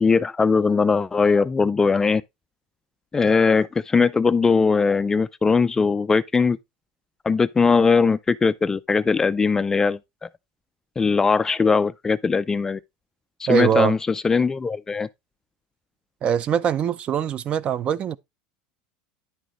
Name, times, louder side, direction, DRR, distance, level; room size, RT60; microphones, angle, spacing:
voice 1, 0.0-2.2 3.1-6.6 7.2-10.3 11.0-12.8 13.4-15.1, left 4 dB, 15° left, 0.4 m, -20 dB
voice 2, 13.5-13.9 16.2-18.2, right 8 dB, 35° right, 0.6 m, -22 dB
10.5 x 6.2 x 3.0 m
supercardioid pair, 140°, 3 cm